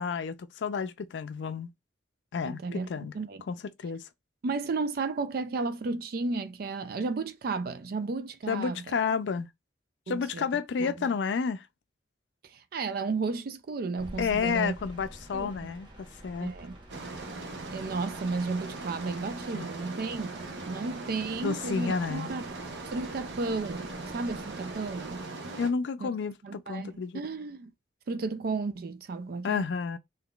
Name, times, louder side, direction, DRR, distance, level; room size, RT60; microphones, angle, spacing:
voice 1, 0.0-1.7 2.3-3.1 3.5-4.0 8.5-9.5 10.1-11.7 14.2-16.5 19.5-19.7 21.4-22.3 25.6-27.2 29.4-30.0, left 5 dB, 85° left, 0.4 m, -31 dB
voice 2, 2.5-3.4 4.4-8.8 10.1-10.5 10.8-11.1 12.5-14.8 15.3-15.7 16.4-16.8 17.7-22.5 22.8-25.3 26.0-26.1 26.4-27.7 28.1-29.6, right 3 dB, 55° right, 0.4 m, -33 dB
sound 1, 14.0-25.2, equal, 25° right, 1.0 m, -50 dB
sound 2, 16.9-25.7, right 3 dB, 80° right, 0.8 m, -40 dB
3.7 x 2.6 x 2.3 m
head